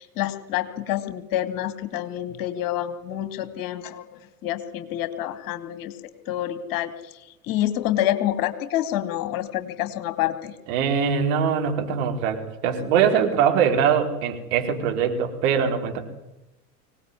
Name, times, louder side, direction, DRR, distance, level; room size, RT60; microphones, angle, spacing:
voice 1, 0.0-5.9 6.3-7.1 7.4-10.5, left 12 dB, 45° left, 10 dB, 2.6 m, -27 dB
voice 2, 10.7-16.1, right 7 dB, 55° right, 3 dB, 4.6 m, -22 dB
24.5 x 18.5 x 9.8 m, 0.96 s
figure-of-eight pair, 85°, 47 cm